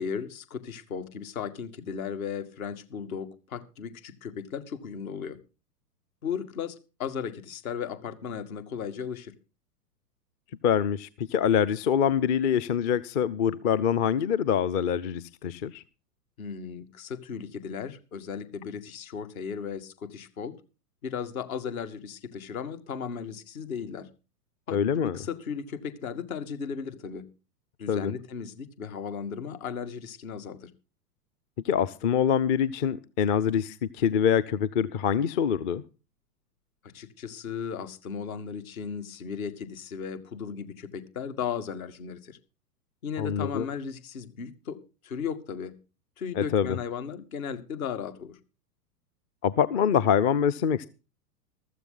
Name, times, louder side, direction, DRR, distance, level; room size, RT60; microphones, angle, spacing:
voice 1, 0.0-5.4 6.2-9.3 16.4-20.6 21.0-24.1 24.7-27.2 27.8-30.7 36.9-42.4 43.0-44.8 45.0-45.7 46.2-48.4, left 7 dB, 60° left, 2.2 m, -36 dB
voice 2, 10.6-15.8 24.7-25.2 27.9-28.1 31.6-35.8 43.2-43.7 46.4-46.8 49.4-50.9, left 8 dB, 30° left, 0.6 m, -25 dB
15.0 x 13.0 x 3.9 m
figure-of-eight pair, 110°, 47 cm